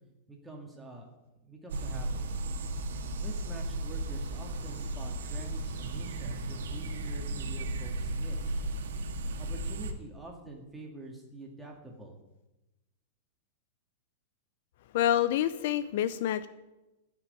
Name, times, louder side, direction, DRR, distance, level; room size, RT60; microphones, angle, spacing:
voice 1, 0.3-1.1 1.4-2.2 3.2-8.5 9.4-12.2, right 2 dB, 5° right, 0 dB, 2.1 m, -46 dB
sound 1, 1.7-9.9, right 2 dB, 85° right, 1.8 m, -35 dB
voice 2, 14.9-16.5, left 11 dB, 55° left, 14 dB, 0.6 m, -27 dB
13.0 x 6.1 x 9.6 m, 1.0 s
supercardioid pair, 165°, 0 cm